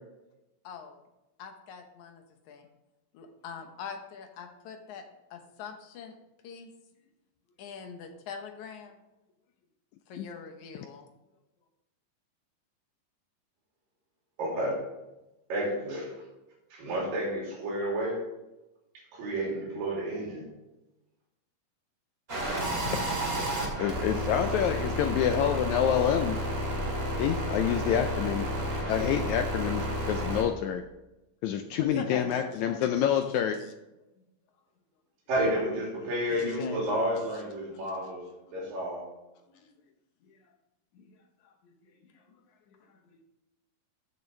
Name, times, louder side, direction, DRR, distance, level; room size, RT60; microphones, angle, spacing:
voice 1, 0.6-1.0 1.4-2.7 3.1-5.0 5.3-6.1 6.4-6.7 7.6-8.9 10.1-11.1 31.8-32.9 33.3-33.7 36.3-37.3 37.7-38.1 38.5-38.6 39.5-39.7 40.2-40.4 40.9-41.2 41.4-41.5 41.8-42.2 42.7-43.2, left 6 dB, 70° left, 5 dB, 2.2 m, -43 dB
voice 2, 14.4-14.8 15.5-16.1 16.7-18.2 19.1-20.4 35.3-38.2 38.5-39.1, right 1 dB, 85° right, -4 dB, 4.5 m, -30 dB
sound 1, 22.3-30.4, equal, 20° right, 1.9 m, -31 dB
voice 3, 23.8-26.4 27.2-28.5 28.9-30.8 31.4-33.6, left 9 dB, 85° left, 6 dB, 1.6 m, -27 dB
13.5 x 7.0 x 3.3 m, 0.97 s
omnidirectional pair, 3.9 m